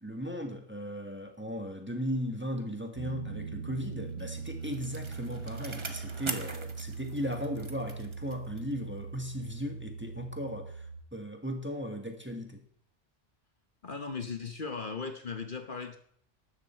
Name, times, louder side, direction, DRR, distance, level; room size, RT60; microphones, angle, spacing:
voice 1, 0.0-10.9 11.1-12.6, equal, 10° right, 4 dB, 1.5 m, -37 dB
Piano, 3.0-11.0, right 5 dB, 80° right, 1.1 m, -41 dB
Bicycle, 3.9-8.8 9.2-9.3, right 3 dB, 25° right, 1.1 m, -43 dB
voice 2, 13.8-16.0, left 5 dB, 50° left, 7 dB, 1.1 m, -37 dB
13.0 x 11.0 x 4.4 m, 0.65 s
omnidirectional pair, 1.2 m